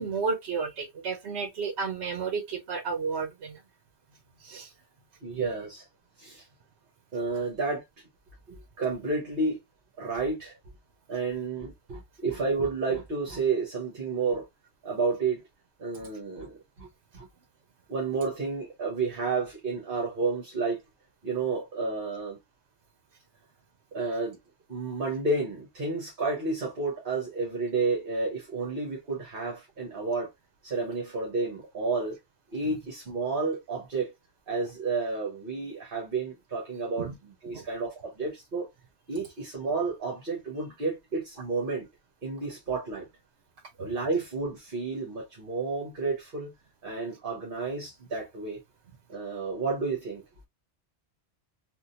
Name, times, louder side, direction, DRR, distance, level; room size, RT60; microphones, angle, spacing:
voice 1, 0.0-3.6 4.4-4.7 37.0-37.1 37.5-37.7 43.8-43.9, right 5 dB, 75° right, 1.0 m, -32 dB
voice 2, 5.2-5.9 6.2-6.5 7.1-7.8 8.5-9.6 10.0-10.6 11.1-14.5 14.8-15.4 15.8-16.9 17.1-17.3 17.9-20.8 21.2-22.4 23.9-24.4 24.7-30.3 30.6-32.2 32.5-34.1 34.5-38.7 39.1-41.9 42.2-43.1 43.8-46.5 46.8-48.6 49.1-50.2, right 4 dB, 55° right, 1.3 m, -31 dB
3.6 x 2.4 x 2.5 m
omnidirectional pair, 1.1 m